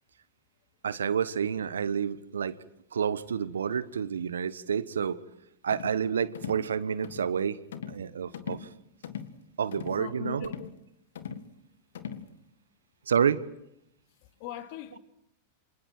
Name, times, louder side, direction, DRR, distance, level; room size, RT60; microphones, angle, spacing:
voice 1, 0.8-2.6 2.9-5.2 5.6-7.6 7.9-8.6 9.6-10.5 13.1-13.4, right 7 dB, 75° right, 1.2 m, -29 dB
sound 1, 5.7-6.0 6.3-6.7 7.0-7.3 7.7-8.1 8.3-8.7 9.0-9.4 9.7-10.0 10.4-10.8 11.2-11.5 11.9-12.3, left 8 dB, 70° left, 1.8 m, -40 dB
voice 2, 10.0-10.7 14.4-15.0, left 11 dB, 50° left, 2.4 m, -40 dB
28.5 x 27.0 x 4.5 m
figure-of-eight pair, 95°, 0 cm